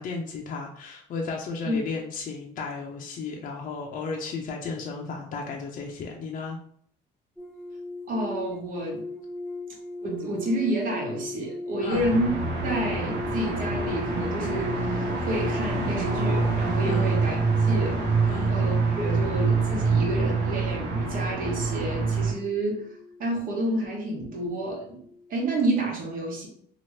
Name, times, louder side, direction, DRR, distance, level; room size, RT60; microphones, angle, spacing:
voice 1, 0.0-6.6 11.8-12.0 16.8-17.1 18.3-18.5, left 4 dB, 50° left, 0 dB, 0.5 m, -34 dB
sound 1, 7.4-24.7 24.9-25.3, left 2 dB, 5° left, 0.4 m, -38 dB
voice 2, 8.1-9.0 10.0-12.3 12.6-22.9 23.2-25.0 25.3-26.5, right 1 dB, 55° right, 0 dB, 1.1 m, -29 dB
sound 2, 11.9-22.3, right 4 dB, 80° right, 0.8 m, -26 dB
2.8 x 2.5 x 3.1 m, 0.62 s
cardioid pair, 110°, 17 cm